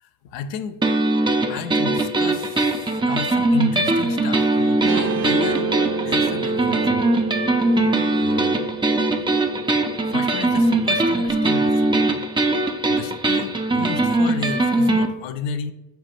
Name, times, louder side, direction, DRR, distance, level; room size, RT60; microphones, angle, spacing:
voice 1, 0.0-0.8 1.5-5.8 6.0-7.1 7.6-7.7 8.2-8.7 10.1-12.0 12.9-15.7, left 6 dB, 65° left, 10 dB, 0.5 m, -33 dB
sound 1, 0.8-15.1, right 2 dB, 10° right, 0.3 m, -21 dB
Guitar, 4.8-11.3, right 5 dB, 60° right, 0.5 m, -29 dB
5.2 x 2.3 x 4.3 m, 1.0 s
hypercardioid pair, 50°, 50 cm